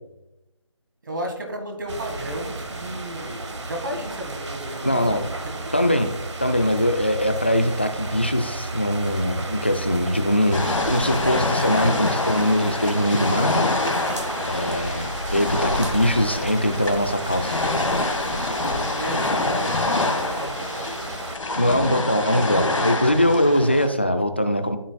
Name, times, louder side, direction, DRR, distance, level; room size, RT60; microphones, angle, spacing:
voice 1, 1.0-5.8 18.6-21.0 23.6-23.7, right 1 dB, 40° right, 4 dB, 1.7 m, -34 dB
sound 1, 1.9-21.4, right 2 dB, 65° right, 1.1 m, -33 dB
voice 2, 4.8-5.2 5.7-6.1 6.4-13.6 14.4-17.6 21.6-24.8, equal, 20° left, 8 dB, 0.4 m, -22 dB
sound 2, 10.5-23.9, left 2 dB, 80° left, 1.3 m, -26 dB
13.0 x 5.0 x 2.2 m, 0.92 s
figure-of-eight pair, 170°, 16 cm